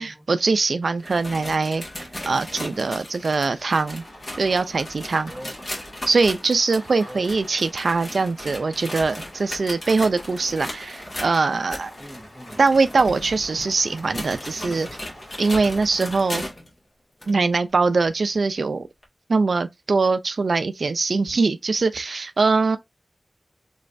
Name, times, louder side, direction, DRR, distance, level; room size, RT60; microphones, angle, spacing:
voice 1, 0.0-4.0 4.4-5.3 6.1-11.9 12.6-14.9 15.4-16.4 17.3-18.9 19.3-22.8, right 4 dB, 80° right, 0.3 m, -22 dB
sound 1, 0.8-16.7 17.2-17.3 18.0-18.1 19.0-19.1, left 1 dB, 40° left, 2.0 m, -37 dB
sound 2, 1.5-16.6, equal, 70° left, 2.3 m, -51 dB
Rain, 3.8-16.5, left 1 dB, 90° left, 2.3 m, -46 dB
voice 2, 12.0-12.6 15.6-15.8, equal, ahead, 0.8 m, -41 dB
3.8 x 3.2 x 2.6 m
cardioid pair, 40°, 0 cm